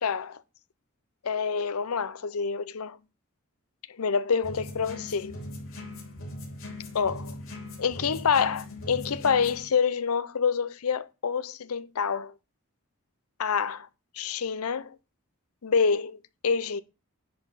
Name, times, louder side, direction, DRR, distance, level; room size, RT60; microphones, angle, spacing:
voice 1, 0.0-0.4 1.2-3.0 4.0-5.4 6.9-7.3 7.8-12.3 13.4-13.9 14.2-15.0 15.6-16.8, left 6 dB, 90° left, 0.6 m, -27 dB
sound 1, 4.4-9.7, left 1 dB, 70° left, 3.1 m, -40 dB
10.5 x 4.5 x 5.6 m
head